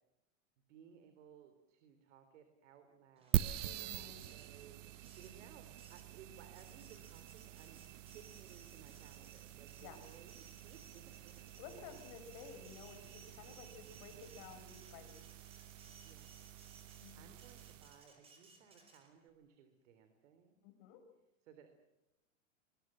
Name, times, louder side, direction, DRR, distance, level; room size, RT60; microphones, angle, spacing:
voice 1, 0.7-7.8 8.1-11.4 15.9-16.4 17.2-20.6 21.4-21.7, right 7 dB, 75° right, 8 dB, 3.6 m, -61 dB
Printer, 3.2-19.3, right 3 dB, 15° right, 5.0 m, -63 dB
sound 1, 3.3-18.0, right 13 dB, 90° right, 0.8 m, -45 dB
voice 2, 3.6-4.2 9.8-10.0 11.6-15.2 17.0-17.3 20.6-21.0, left 7 dB, 45° left, 7 dB, 5.1 m, -54 dB
24.5 x 22.5 x 7.6 m, 0.96 s
supercardioid pair, 160°, 36 cm